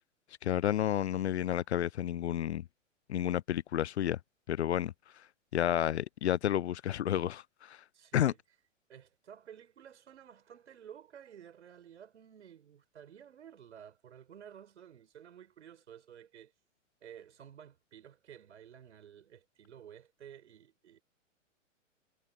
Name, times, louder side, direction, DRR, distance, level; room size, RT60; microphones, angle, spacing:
voice 1, 0.4-2.6 3.1-4.2 4.5-4.9 5.5-7.8 8.1-8.3, left 11 dB, 60° left, 0.5 m, -31 dB
voice 2, 7.9-8.4 8.9-16.5 17.0-21.0, right 9 dB, 60° right, 5.4 m, -53 dB
figure-of-eight pair, 110°, 38 cm